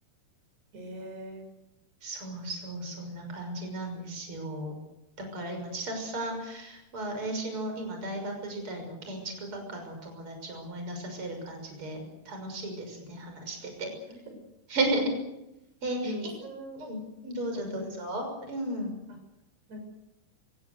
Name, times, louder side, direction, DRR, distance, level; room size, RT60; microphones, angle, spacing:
voice 1, 0.7-1.4 16.0-16.8 17.7-18.2 19.7-19.8, equal, 85° right, 3 dB, 8.9 m, -40 dB
voice 2, 2.0-4.7 5.3-12.0 12.3-13.9 14.7-15.0 15.8-16.1 16.8-18.9, right 1 dB, 30° right, 4 dB, 7.0 m, -35 dB
28.0 x 17.0 x 8.1 m, 0.91 s
omnidirectional pair, 4.7 m